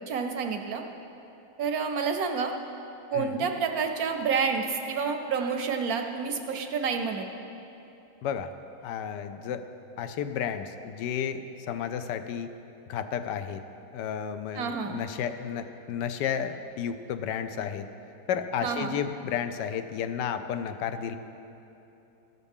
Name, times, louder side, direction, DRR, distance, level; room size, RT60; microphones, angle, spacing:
voice 1, 0.1-0.8 1.6-2.5 3.1-7.3 14.5-15.0 18.6-19.0, right 5 dB, 65° right, 5 dB, 1.0 m, -29 dB
voice 2, 3.1-3.5 8.2-8.5 8.8-9.6 10.0-11.4 11.7-12.5 12.9-13.6 13.9-17.9 18.3-21.2, left 8 dB, 80° left, 9 dB, 1.2 m, -32 dB
13.0 x 12.0 x 3.6 m, 2.8 s
omnidirectional pair, 1.9 m